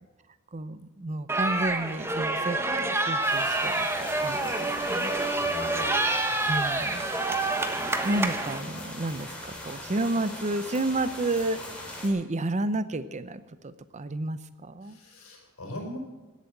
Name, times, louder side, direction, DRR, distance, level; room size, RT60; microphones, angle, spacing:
voice 1, 0.5-5.2 6.5-7.0 8.0-15.0, right 2 dB, 35° right, 14 dB, 0.6 m, -31 dB
sound 1, 1.3-8.6, right 2 dB, 10° right, 1.2 m, -27 dB
sound 2, 3.2-12.1, left 1 dB, 5° left, 3.4 m, -40 dB
voice 2, 5.1-6.2 14.8-16.0, left 1 dB, 80° left, 1 dB, 5.2 m, -40 dB
17.0 x 8.4 x 7.9 m, 1.2 s
head